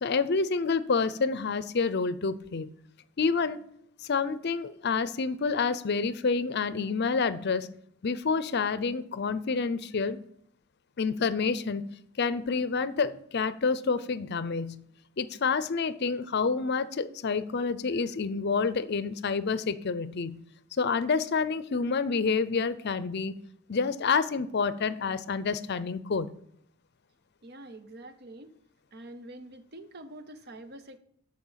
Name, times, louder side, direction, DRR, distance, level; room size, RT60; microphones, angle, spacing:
voice 1, 0.0-2.7 3.2-3.6 4.0-7.7 8.0-10.2 11.0-11.9 12.2-14.8 15.2-20.4 20.8-23.4 23.7-26.3, left 4 dB, 55° left, 15 dB, 0.5 m, -28 dB
voice 2, 27.4-28.5 28.9-31.0, right 1 dB, 50° right, 10 dB, 0.8 m, -46 dB
13.0 x 4.5 x 5.6 m, 0.68 s
head